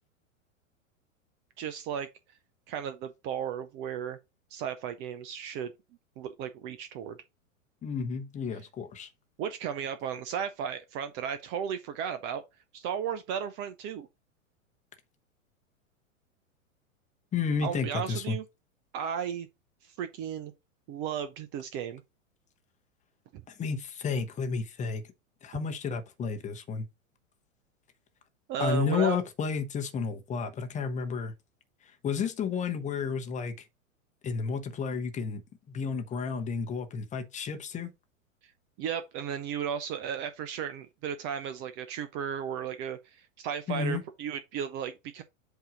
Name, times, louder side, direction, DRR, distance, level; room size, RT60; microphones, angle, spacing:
voice 1, 1.6-2.1 2.7-4.2 4.5-5.7 6.2-7.2 9.4-12.4 12.7-14.1 17.6-18.4 18.9-19.5 19.8-20.5 20.9-22.0 23.3-23.4 28.5-29.2 38.8-45.2, right 8 dB, 30° right, 0.5 m, -34 dB
voice 2, 7.8-9.1 17.3-18.4 23.5-25.0 25.4-26.9 28.6-31.3 31.9-33.7 34.2-35.4 35.7-37.9 43.7-44.0, left 5 dB, 20° left, 0.9 m, -31 dB
7.9 x 2.7 x 4.9 m
figure-of-eight pair, 100°, 40 cm